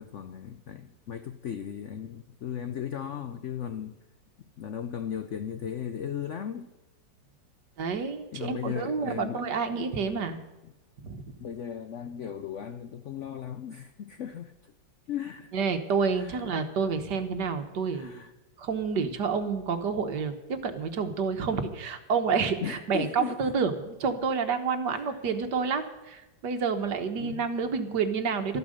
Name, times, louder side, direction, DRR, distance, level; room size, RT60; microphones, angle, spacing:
voice 1, 0.0-4.0 4.6-6.7 8.3-9.5 11.4-14.7 15.1-15.5 16.1-16.6 17.9-18.3 22.6-23.4 25.0-25.2 27.2-27.5, left 8 dB, 70° left, 9 dB, 0.7 m, -37 dB
voice 2, 7.8-10.4 11.0-11.2 15.5-18.3 18.6-28.6, right 5 dB, 65° right, 8 dB, 1.8 m, -29 dB
13.0 x 12.0 x 6.5 m, 1.0 s
omnidirectional pair, 2.0 m